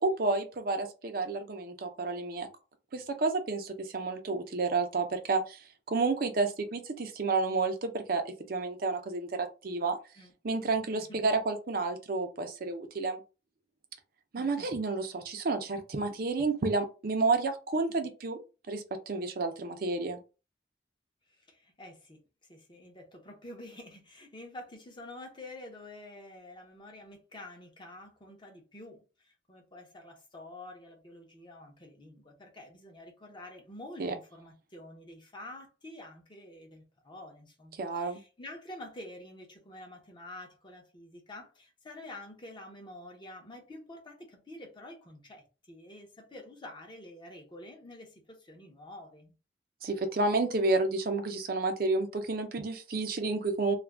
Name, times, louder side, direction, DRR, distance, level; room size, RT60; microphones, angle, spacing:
voice 1, 0.0-2.5 2.9-10.0 10.4-13.2 14.3-18.4 18.7-20.2 34.0-34.1 37.8-38.2 49.8-53.7, right 3 dB, 50° right, 0.5 m, -30 dB
voice 2, 10.9-11.2 14.4-14.7 21.3-22.2 22.5-49.3, left 1 dB, 25° left, 0.7 m, -48 dB
2.4 x 2.2 x 3.3 m
head